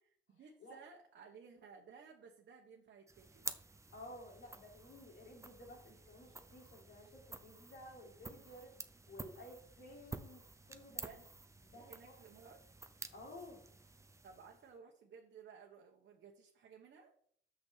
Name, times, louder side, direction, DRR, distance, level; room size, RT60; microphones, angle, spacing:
voice 1, 0.3-3.5 10.9-11.3 11.7-12.6 14.2-17.1, right 6 dB, 60° right, 0 dB, 1.2 m, -57 dB
sound 1, 3.1-14.8, right 3 dB, 15° right, 0.8 m, -51 dB
voice 2, 3.9-8.7 9.1-11.1 11.7-12.2 13.1-13.6, left 1 dB, 75° left, -1 dB, 3.6 m, -54 dB
6.3 x 6.2 x 5.8 m, 0.63 s
cardioid pair, 90°, 20 cm